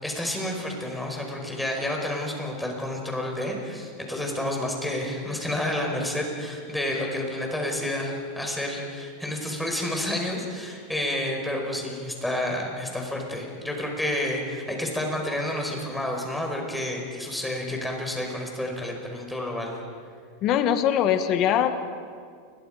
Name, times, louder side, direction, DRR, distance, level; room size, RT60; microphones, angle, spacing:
voice 1, 0.0-19.8, left 1 dB, 5° left, 1 dB, 5.2 m, -30 dB
voice 2, 20.4-21.7, left 10 dB, 40° left, 8 dB, 1.8 m, -22 dB
29.0 x 22.5 x 5.2 m, 2.2 s
supercardioid pair, 130°, 0 cm